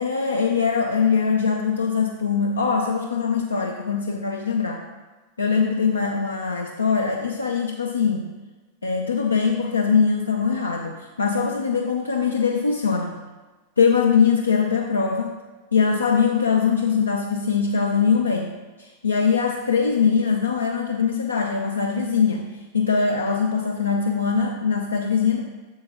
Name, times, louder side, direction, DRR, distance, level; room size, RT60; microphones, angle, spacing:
voice 1, 0.0-4.8 5.4-8.3 8.8-13.1 13.8-15.3 15.7-18.5 18.8-22.4 22.7-25.4, left 5 dB, 80° left, 2 dB, 0.5 m, -22 dB
7.5 x 6.9 x 2.9 m, 1.2 s
figure-of-eight pair, 90°, 0 cm